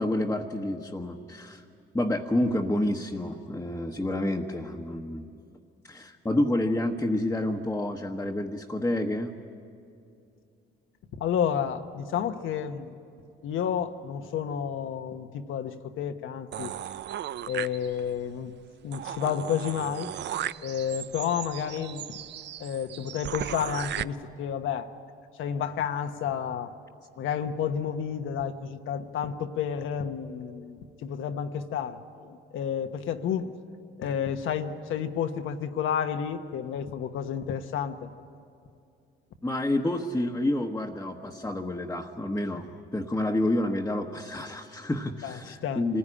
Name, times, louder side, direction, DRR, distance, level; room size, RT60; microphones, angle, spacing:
voice 1, 0.0-1.6 1.9-5.3 5.9-9.3 39.4-46.0, left 1 dB, 10° left, 0 dB, 1.2 m, -29 dB
voice 2, 11.2-13.0 13.4-16.7 17.5-18.5 18.8-20.1 20.6-22.0 22.6-24.9 25.4-26.7 27.2-33.5 34.0-38.1 45.2-45.8, left 8 dB, 80° left, 8 dB, 1.1 m, -31 dB
sound 1, 16.5-18.2 18.6-18.7 18.9-24.0, right 11 dB, 60° right, 0.5 m, -36 dB
25.5 x 15.5 x 10.0 m, 2.5 s
cardioid pair, 90°, 20 cm